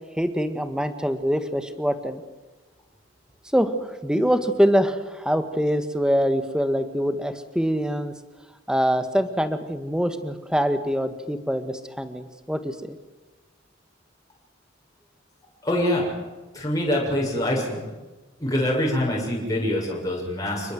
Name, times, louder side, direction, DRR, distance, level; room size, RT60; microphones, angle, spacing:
voice 1, 0.2-2.2 3.5-8.1 8.7-13.0, equal, 5° right, 9 dB, 1.8 m, -24 dB
voice 2, 15.6-16.1 16.5-17.8 18.4-20.7, left 1 dB, 20° left, -3 dB, 7.1 m, -24 dB
29.5 x 20.5 x 7.9 m, 1.1 s
head